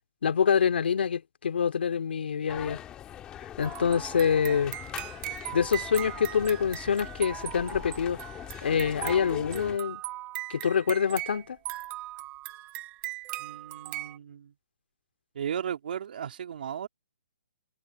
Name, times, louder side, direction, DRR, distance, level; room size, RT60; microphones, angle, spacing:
voice 1, 0.2-2.8 3.4-4.8 5.5-8.2 8.6-10.0 10.5-11.6, left 7 dB, 65° left, 2.5 m, -26 dB
sound 1, 2.5-9.8, left 11 dB, 15° left, 1.6 m, -41 dB
sound 2, 3.6-14.2, right 17 dB, 20° right, 0.7 m, -39 dB
voice 2, 13.4-14.5 15.3-16.9, right 9 dB, 55° right, 2.9 m, -36 dB
hypercardioid pair, 165°, 6 cm